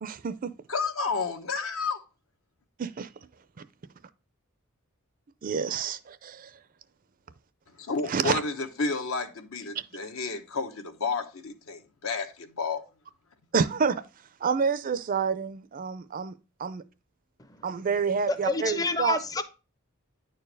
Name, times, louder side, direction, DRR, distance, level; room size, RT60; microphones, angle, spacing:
voice 1, 0.0-0.5 2.8-3.1 5.4-6.5 8.1-8.4 9.7-9.8 13.5-14.0 14.4-16.3 16.6-16.8 17.6-19.2, right 5 dB, 40° right, 0.4 m, -28 dB
voice 2, 0.7-2.0 7.8-12.8, left 4 dB, 70° left, 1.0 m, -31 dB
voice 3, 18.3-19.4, left 3 dB, 15° left, 0.5 m, -29 dB
10.0 x 4.5 x 3.3 m
head